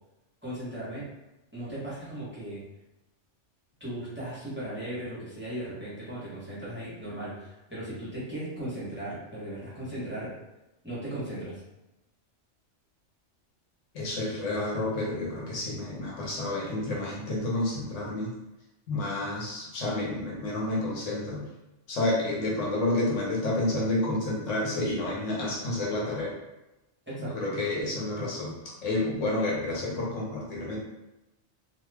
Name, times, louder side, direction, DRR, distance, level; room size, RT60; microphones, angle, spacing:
voice 1, 0.4-1.1 1.5-2.6 3.8-10.3 10.8-11.6 27.1-27.5, right 1 dB, 10° right, -10 dB, 1.0 m, -37 dB
voice 2, 13.9-18.3 18.9-21.4 21.9-26.3 27.2-30.8, left 2 dB, 85° left, -4 dB, 1.3 m, -30 dB
2.7 x 2.3 x 3.3 m, 0.98 s
omnidirectional pair, 1.2 m